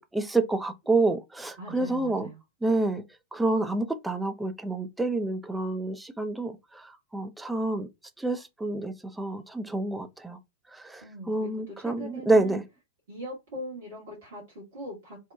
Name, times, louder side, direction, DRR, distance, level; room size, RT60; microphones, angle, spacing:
voice 1, 0.0-2.3 2.6-3.0 3.3-6.8 7.1-7.9 8.2-10.4 10.8-12.6, right 2 dB, 5° right, 0.3 m, -28 dB
voice 2, 1.6-2.4 11.0-12.6 13.1-15.3, right 1 dB, 55° right, 1.1 m, -41 dB
2.7 x 2.1 x 2.3 m
figure-of-eight pair, 90°, 0 cm